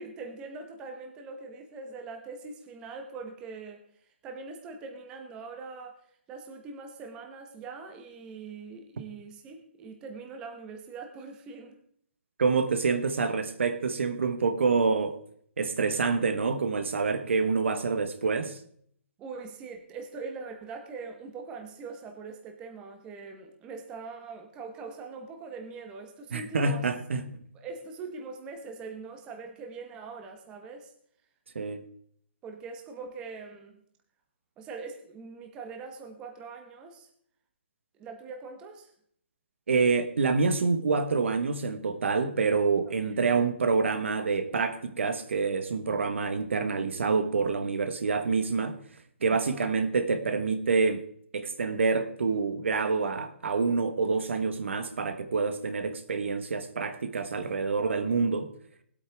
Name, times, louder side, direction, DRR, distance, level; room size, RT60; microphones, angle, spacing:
voice 1, 0.0-3.8 4.2-6.0 6.3-11.8 19.2-26.9 27.5-30.9 32.4-33.8 34.6-37.1 37.9-38.9 43.1-43.3 49.4-49.6 57.8-58.5, right 4 dB, 10° right, 4 dB, 1.0 m, -42 dB
voice 2, 12.4-15.2 15.6-18.6 26.3-27.3 31.5-31.8 39.7-48.8 49.2-51.0 51.3-58.5, right 4 dB, 70° right, 10 dB, 1.4 m, -27 dB
19.0 x 8.6 x 3.5 m, 0.65 s
hypercardioid pair, 170°, 7 cm